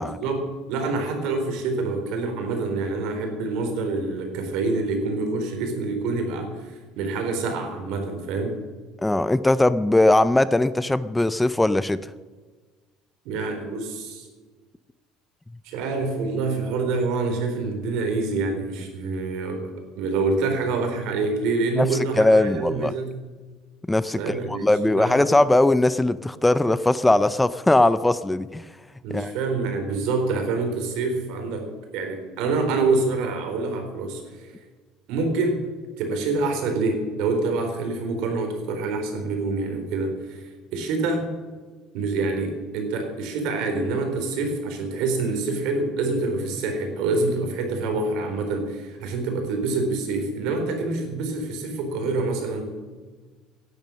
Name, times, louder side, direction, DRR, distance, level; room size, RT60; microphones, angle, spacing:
voice 1, 0.0-8.6 13.2-14.3 15.6-23.1 24.1-25.3 29.0-31.7 31.9-34.5 35.1-35.6 36.0-41.3 41.9-52.7, right 3 dB, 70° right, 5 dB, 4.1 m, -26 dB
voice 2, 9.0-12.1 21.8-21.9 22.2-22.9 23.9-28.6 29.1-29.3, left 2 dB, 10° left, 15 dB, 0.5 m, -20 dB
16.5 x 11.0 x 6.4 m, 1.4 s
cardioid pair, 120°, 0 cm